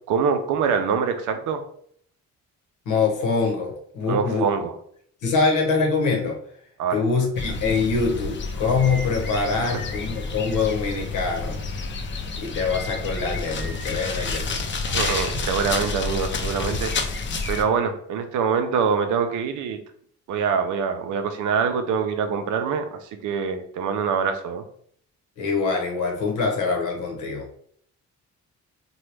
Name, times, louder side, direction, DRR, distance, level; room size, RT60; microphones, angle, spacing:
voice 1, 0.1-1.6 4.1-4.7 6.8-7.0 9.6-9.8 14.9-16.9 17.5-19.8 20.3-24.7, right 6 dB, 80° right, 7 dB, 0.6 m, -24 dB
voice 2, 2.9-4.5 5.2-6.4 6.9-11.6 12.4-14.7 25.4-27.5, left 4 dB, 85° left, 2 dB, 0.9 m, -24 dB
sound 1, 7.3-17.6, left 4 dB, 40° left, 0.5 m, -29 dB
3.0 x 2.2 x 3.2 m, 0.63 s
cardioid pair, 90°, 30 cm